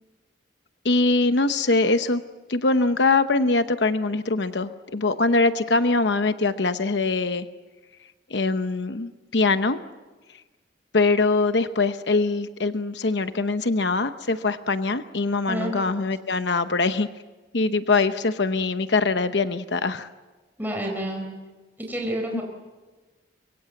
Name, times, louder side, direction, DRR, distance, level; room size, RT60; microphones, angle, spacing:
voice 1, 0.8-2.2 2.5-7.5 8.3-9.8 10.9-17.1 17.5-20.1 22.3-22.4, left 3 dB, 70° left, 10 dB, 0.9 m, -23 dB
voice 2, 15.5-15.8 20.6-21.3 21.8-22.4, right 1 dB, 10° right, 1 dB, 4.4 m, -29 dB
25.0 x 23.5 x 7.9 m, 1.3 s
head